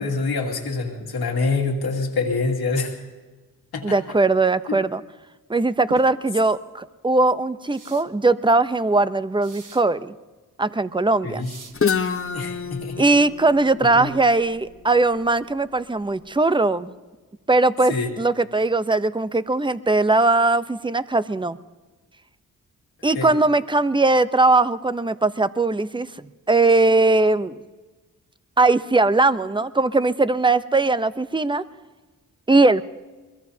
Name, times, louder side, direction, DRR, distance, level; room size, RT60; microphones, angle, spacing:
voice 1, 0.0-2.9 3.7-4.0 4.7-4.8 11.2-11.5 12.3-13.0 13.9-14.1 17.9-18.1 23.1-23.4, left 3 dB, 85° left, 1 dB, 2.4 m, -25 dB
voice 2, 3.8-5.0 5.5-10.1 10.6-11.5 13.0-16.9 17.5-21.6 23.0-26.1 26.5-27.6 28.6-31.6 32.5-32.8, right 3 dB, 15° right, 13 dB, 0.7 m, -20 dB
sound 1, 5.9-6.1 7.7-8.0 9.4-9.8 11.4-11.7, right 5 dB, 55° right, 1.5 m, -39 dB
Guitar, 11.7-15.5, left 6 dB, 35° left, 1.0 m, -28 dB
22.5 x 22.0 x 2.8 m, 1.2 s
cardioid pair, 45°, 36 cm